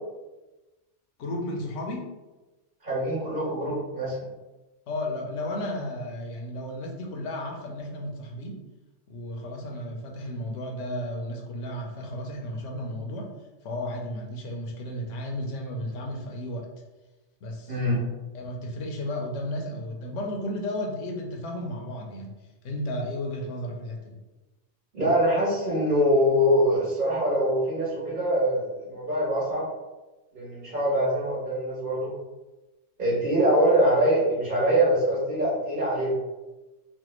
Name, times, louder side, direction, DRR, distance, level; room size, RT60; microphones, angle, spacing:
voice 1, 1.2-2.1 4.9-8.6 9.1-13.3 13.6-16.7 17.4-17.9 18.3-22.3 22.6-24.2, left 1 dB, 80° left, 1 dB, 1.0 m, -33 dB
voice 2, 2.8-4.2 17.7-18.0 24.9-29.7 30.3-32.1 33.0-36.2, equal, 45° right, -10 dB, 1.4 m, -24 dB
3.3 x 2.2 x 3.0 m, 1.1 s
omnidirectional pair, 1.3 m